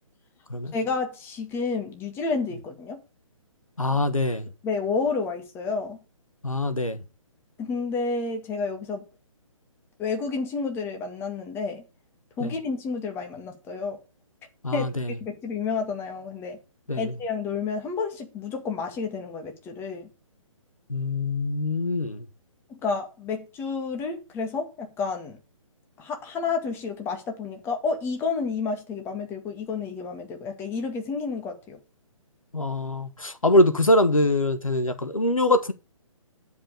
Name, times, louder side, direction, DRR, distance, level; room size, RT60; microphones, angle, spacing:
voice 1, 0.7-3.0 4.6-6.0 7.6-9.0 10.0-11.8 12.4-14.0 14.7-14.9 15.2-16.6 17.0-20.1 22.7-25.4 26.0-31.8, left 4 dB, 15° left, 1.9 m, -30 dB
voice 2, 3.8-4.4 6.4-7.0 12.4-12.5 14.6-15.1 16.9-17.1 20.9-22.2 32.5-35.7, left 1 dB, 80° left, 1.4 m, -23 dB
10.0 x 5.4 x 6.6 m
figure-of-eight pair, 135°, 17 cm